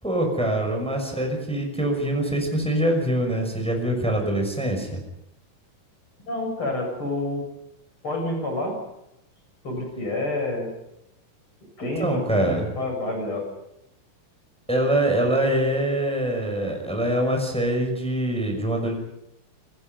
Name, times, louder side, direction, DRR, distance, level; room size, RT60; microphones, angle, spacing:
voice 1, 0.0-5.0 12.0-12.7 14.7-18.9, right 1 dB, ahead, 2 dB, 5.9 m, -24 dB
voice 2, 6.3-7.4 8.0-8.8 9.6-10.7 11.8-13.4, left 1 dB, 35° left, 3 dB, 8.3 m, -28 dB
29.0 x 21.5 x 5.5 m, 0.82 s
omnidirectional pair, 3.8 m